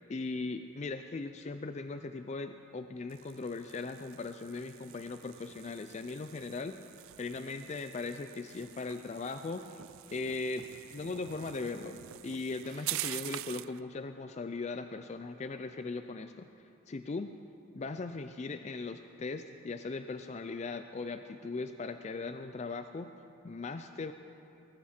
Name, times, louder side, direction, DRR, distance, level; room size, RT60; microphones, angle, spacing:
voice 1, 0.1-6.8 7.2-9.8 10.1-10.6 10.9-16.5 16.9-17.3 17.7-23.1 23.4-24.1, left 3 dB, 35° left, 9 dB, 0.4 m, -39 dB
sound 1, 3.1-13.8, right 16 dB, 85° right, 0.3 m, -45 dB
19.0 x 14.0 x 4.4 m, 2.9 s
head